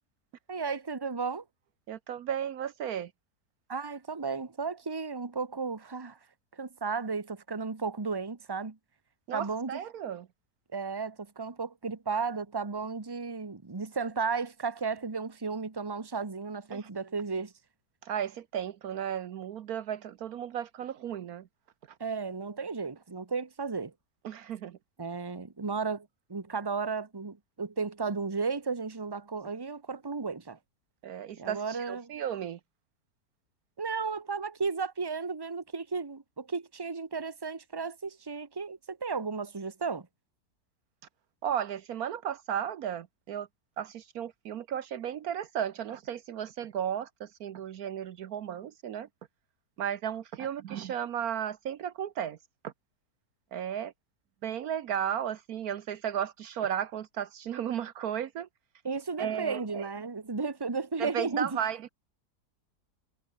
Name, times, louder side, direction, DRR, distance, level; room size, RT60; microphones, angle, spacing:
voice 1, 0.5-1.4 3.7-6.2 6.5-8.8 9.3-9.8 10.7-17.5 22.0-23.9 25.0-30.6 31.4-32.1 33.8-40.1 50.4-50.5 58.8-61.6, right 4 dB, 15° right, 1.3 m, -34 dB
voice 2, 1.9-3.1 9.3-10.3 16.7-16.8 18.0-21.5 24.2-24.8 31.0-32.6 41.4-43.5 43.8-49.1 49.8-52.4 52.6-52.7 53.5-53.9 54.4-58.5 59.2-59.9 61.0-61.9, right 9 dB, 70° right, 1.3 m, -34 dB
omnidirectional pair, 1.7 m